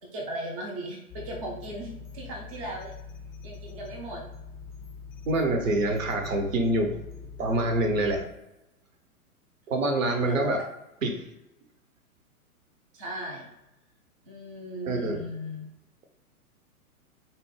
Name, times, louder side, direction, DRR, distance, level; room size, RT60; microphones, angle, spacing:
voice 1, 0.0-2.9 3.4-4.2 8.0-8.2 10.2-10.4 12.9-13.5 14.3-15.6, right 1 dB, 25° right, -1 dB, 0.4 m, -37 dB
sound 1, 1.1-8.3, left 5 dB, 35° left, 0.5 m, -43 dB
voice 2, 5.2-6.9 7.4-8.2 9.7-10.6 11.0-11.2 14.8-15.2, right 1 dB, 65° right, 3 dB, 0.8 m, -25 dB
4.1 x 2.0 x 3.1 m, 0.90 s
figure-of-eight pair, 105°, 44 cm